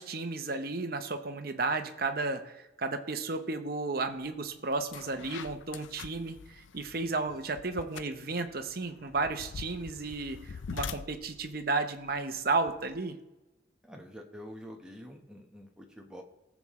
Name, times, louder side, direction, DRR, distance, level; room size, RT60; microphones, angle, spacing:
voice 1, 0.0-13.2, right 3 dB, 50° right, 7 dB, 0.9 m, -33 dB
sound 1, 4.2-4.4 4.7-13.0, left 6 dB, 80° left, 0.4 m, -45 dB
voice 2, 13.8-16.2, equal, 5° right, 1 dB, 1.2 m, -47 dB
18.0 x 7.3 x 3.2 m, 1.0 s
head